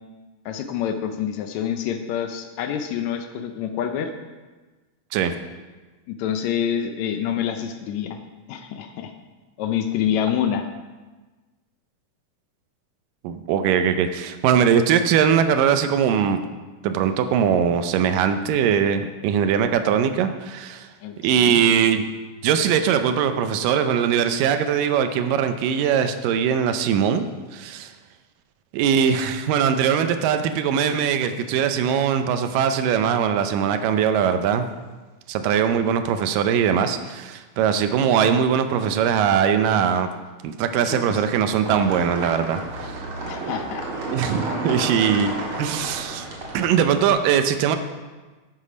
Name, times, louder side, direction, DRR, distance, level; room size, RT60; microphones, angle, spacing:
voice 1, 0.4-4.1 6.1-8.2 8.5-9.1 9.6-10.7 21.0-21.6 40.9-41.0 43.3-43.9 44.6-44.7, left 9 dB, 75° left, 7 dB, 1.7 m, -27 dB
voice 2, 13.2-16.4 16.8-20.9 21.2-22.1 22.4-27.3 27.5-27.9 28.7-34.7 35.3-40.1 40.4-43.1 44.1-46.3 46.5-47.8, right 8 dB, 85° right, 9 dB, 2.4 m, -21 dB
sound 1, 41.6-47.1, right 2 dB, 45° right, 2.1 m, -31 dB
9.6 x 8.4 x 5.0 m, 1.3 s
omnidirectional pair, 3.8 m